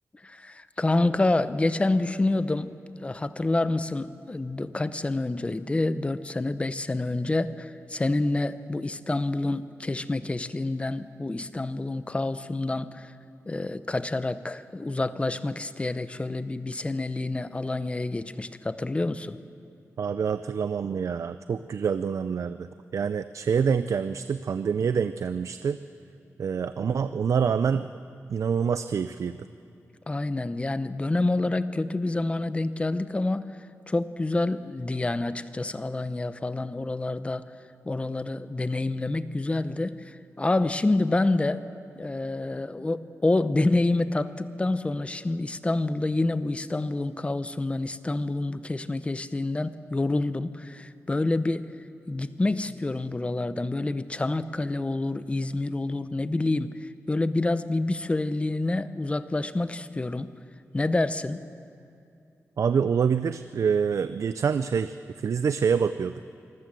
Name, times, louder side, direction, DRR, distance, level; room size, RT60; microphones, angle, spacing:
voice 1, 0.2-2.7 3.0-13.1 13.5-19.4 30.1-33.4 33.9-37.5 37.8-41.6 42.0-51.7 52.1-60.3 60.7-61.4, left 2 dB, 20° left, 13 dB, 0.7 m, -27 dB
voice 2, 20.0-22.7 22.9-25.8 26.4-27.9 28.3-29.4 62.6-66.1, right 6 dB, 70° right, 12 dB, 0.5 m, -26 dB
25.5 x 14.0 x 7.7 m, 2.6 s
wide cardioid pair, 100°, 5 cm